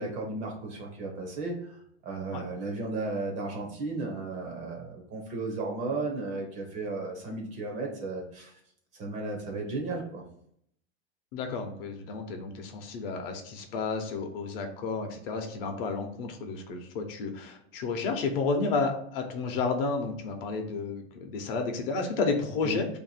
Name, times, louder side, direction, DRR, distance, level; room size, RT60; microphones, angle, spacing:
voice 1, 0.0-8.6 9.0-10.2 22.6-22.8, right 3 dB, 25° right, 1 dB, 0.4 m, -34 dB
voice 2, 11.3-22.9, left 4 dB, 55° left, 5 dB, 0.7 m, -31 dB
2.6 x 2.5 x 4.0 m, 0.69 s
supercardioid pair, 155°, 33 cm